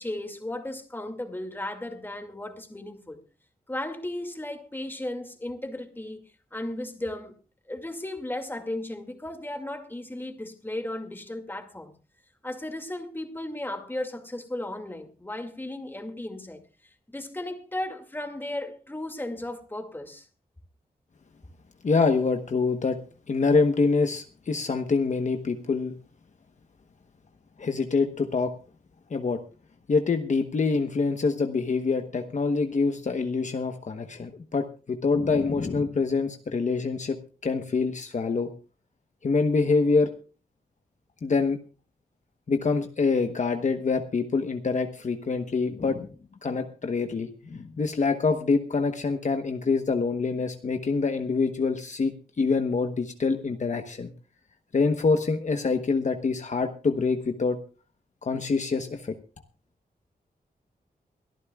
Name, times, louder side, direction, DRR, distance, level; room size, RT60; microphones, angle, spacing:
voice 1, 0.0-3.2 3.7-6.2 6.5-7.4 7.7-11.9 12.4-16.6 17.1-20.3, left 1 dB, 15° left, 5 dB, 2.3 m, -35 dB
voice 2, 21.8-23.0 23.3-25.9 27.6-28.5 29.1-29.4 29.9-37.2 37.4-38.5 39.2-40.1 41.2-41.6 42.5-46.1 46.4-54.1 54.7-57.6 58.2-59.2, left 4 dB, 50° left, 6 dB, 1.1 m, -25 dB
23.5 x 14.0 x 2.4 m, 0.36 s
wide cardioid pair, 130°, 16 cm